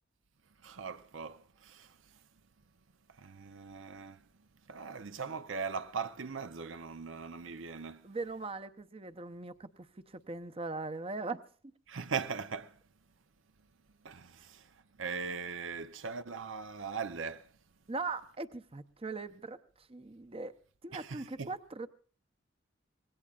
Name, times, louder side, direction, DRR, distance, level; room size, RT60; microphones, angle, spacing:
voice 1, 0.6-1.9 3.2-4.2 4.7-8.0 11.9-12.7 14.0-14.6 15.0-17.5 20.9-21.5, right 5 dB, 75° right, 0.7 m, -40 dB
voice 2, 8.0-9.9 10.1-11.4 17.9-19.6 19.9-20.5 20.8-21.9, right 3 dB, 30° right, 0.8 m, -40 dB
25.5 x 19.5 x 2.5 m
head